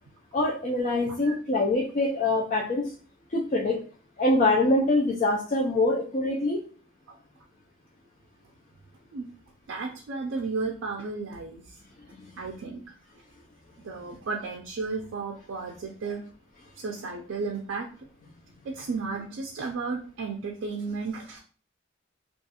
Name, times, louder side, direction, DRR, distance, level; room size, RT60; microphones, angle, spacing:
voice 1, 0.3-2.9 3.3-3.8 4.2-6.6 12.2-12.3, left 2 dB, 40° left, -3 dB, 0.4 m, -24 dB
voice 2, 9.7-11.8 12.4-12.8 13.1-13.2 13.8-16.2 16.8-17.9 18.6-21.4, right 4 dB, 70° right, 1 dB, 0.4 m, -33 dB
2.4 x 2.3 x 2.8 m, 0.41 s
head